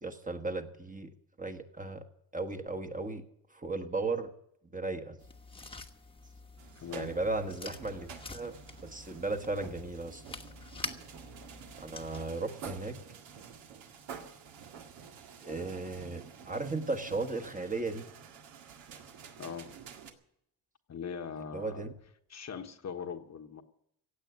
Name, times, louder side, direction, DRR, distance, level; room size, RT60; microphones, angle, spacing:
voice 1, 0.0-1.1 1.4-2.0 2.3-3.2 3.5-4.3 4.7-5.2 6.9-8.6 8.8-10.2 11.8-12.9 15.4-18.1 21.5-21.9, right 3 dB, 20° right, 1.3 m, -35 dB
sound 1, 5.2-12.3, left 3 dB, 10° left, 1.2 m, -47 dB
sound 2, 6.6-20.1, right 7 dB, 75° right, 2.0 m, -49 dB
voice 2, 6.7-7.1 19.4-19.7 20.9-21.9 22.3-23.6, left 6 dB, 35° left, 1.2 m, -41 dB
16.5 x 8.4 x 9.3 m
cardioid pair, 115°, 44 cm